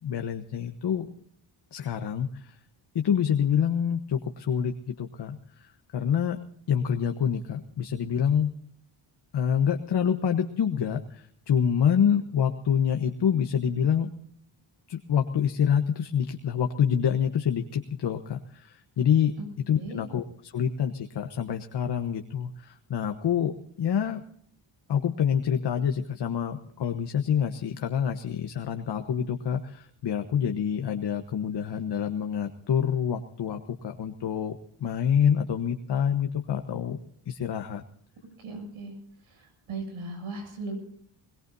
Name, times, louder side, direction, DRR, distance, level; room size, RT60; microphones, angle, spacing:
voice 1, 0.0-1.1 1.7-2.6 2.9-6.4 6.7-8.5 9.3-14.1 14.9-19.3 19.7-24.2 24.9-37.0 37.3-37.8, left 8 dB, 55° left, 6 dB, 1.2 m, -27 dB
voice 2, 38.4-38.9 39.3-40.8, right 3 dB, 80° right, 3 dB, 7.7 m, -37 dB
21.5 x 21.0 x 2.7 m, 0.64 s
cardioid pair, 95°, 49 cm